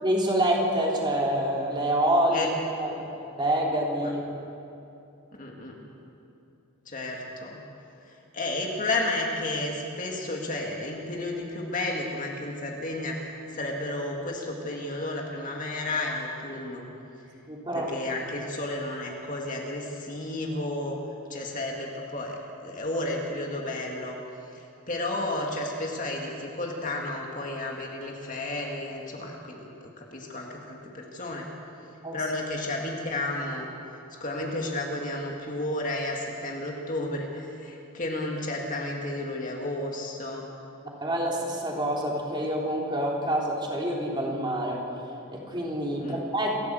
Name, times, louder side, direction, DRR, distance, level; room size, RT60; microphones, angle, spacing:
voice 1, 0.0-4.2 17.5-17.9 32.0-32.2 41.0-44.8 45.3-46.5, right 1 dB, 20° right, -2 dB, 3.5 m, -27 dB
voice 2, 5.4-5.9 6.9-7.6 8.0-16.9 17.7-21.0 21.3-24.2 24.5-31.5 32.1-33.7 34.1-40.5 46.0-46.2, left 2 dB, 35° left, 0 dB, 2.3 m, -32 dB
28.0 x 14.0 x 7.9 m, 2.7 s
head